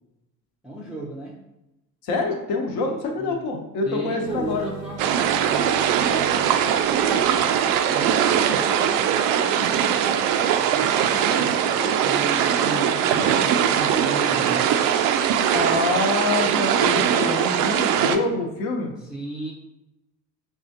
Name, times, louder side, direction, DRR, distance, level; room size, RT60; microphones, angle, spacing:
voice 1, 0.6-1.4 2.8-3.5 3.8-7.5 7.9-10.3 10.7-14.8 19.0-19.5, right 1 dB, ahead, -4 dB, 0.5 m, -35 dB
voice 2, 2.0-4.7 15.5-18.9, left 3 dB, 55° left, 2 dB, 1.0 m, -26 dB
sound 1, 4.2-8.5, right 5 dB, 80° left, 1.2 m, -40 dB
sound 2, 5.0-18.2, right 9 dB, 50° right, 0.5 m, -21 dB
5.9 x 2.4 x 2.7 m, 0.93 s
figure-of-eight pair, 60°, 47 cm